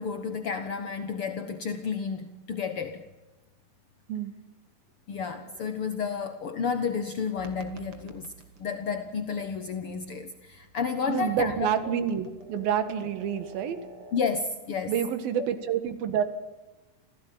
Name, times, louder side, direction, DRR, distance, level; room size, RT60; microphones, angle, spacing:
voice 1, 0.0-3.0 5.1-11.7 14.1-15.0, left 5 dB, 75° left, 1.2 m, -31 dB
sound 1, 7.4-14.3, right 3 dB, 40° right, 2.8 m, -49 dB
voice 2, 11.1-13.8 14.9-16.2, right 8 dB, 70° right, 3.5 m, -28 dB
26.5 x 16.5 x 9.2 m
omnidirectional pair, 4.4 m